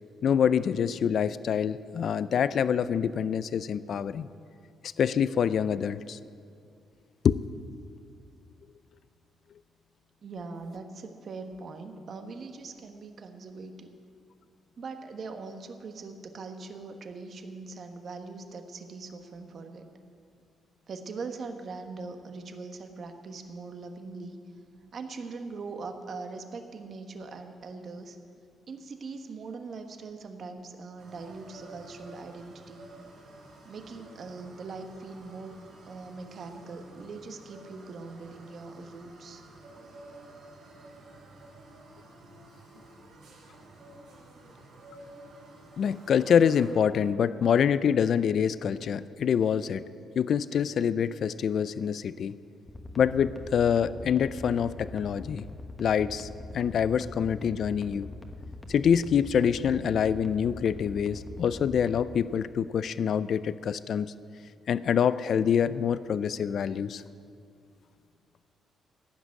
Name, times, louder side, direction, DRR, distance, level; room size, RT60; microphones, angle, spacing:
voice 1, 0.2-4.3 5.0-6.2 7.2-7.4 45.8-49.8 50.2-52.3 53.0-55.5 55.8-58.1 58.7-64.1 64.7-67.0, left 8 dB, 60° left, 16 dB, 0.4 m, -26 dB
voice 2, 10.2-13.9 14.8-19.9 20.9-24.4 24.9-28.2 28.7-32.9 33.6-35.6 35.8-39.4, right 4 dB, 50° right, 6 dB, 1.3 m, -41 dB
sound 1, 31.0-46.7, right 2 dB, 85° right, 3.9 m, -51 dB
sound 2, 52.7-62.0, left 2 dB, 15° left, 1.2 m, -42 dB
15.5 x 6.2 x 9.6 m, 2.3 s
cardioid pair, 90°, 0 cm